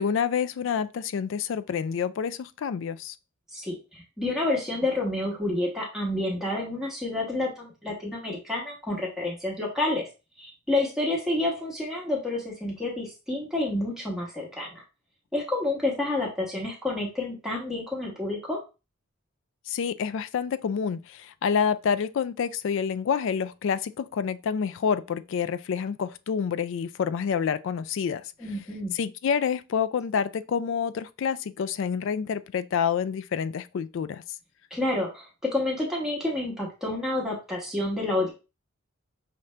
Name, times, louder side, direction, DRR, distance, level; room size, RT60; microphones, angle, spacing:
voice 1, 0.0-3.2 19.7-28.3 28.9-34.2, left 7 dB, 60° left, 0.3 m, -28 dB
voice 2, 3.5-10.0 10.4-14.8 15.3-18.6 28.4-28.9 34.7-38.3, left 2 dB, ahead, 1.1 m, -29 dB
5.7 x 2.5 x 3.2 m
head